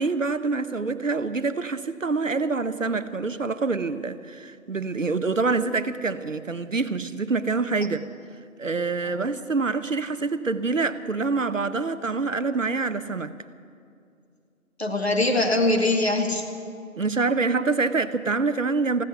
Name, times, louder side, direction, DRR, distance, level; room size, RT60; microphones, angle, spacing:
voice 1, 0.0-8.0 8.6-13.3 17.0-19.0, right 4 dB, 65° right, 12 dB, 0.8 m, -26 dB
voice 2, 14.8-16.5, left 2 dB, 45° left, 3 dB, 1.8 m, -23 dB
15.5 x 14.0 x 6.8 m, 2.4 s
figure-of-eight pair, 175°, 42 cm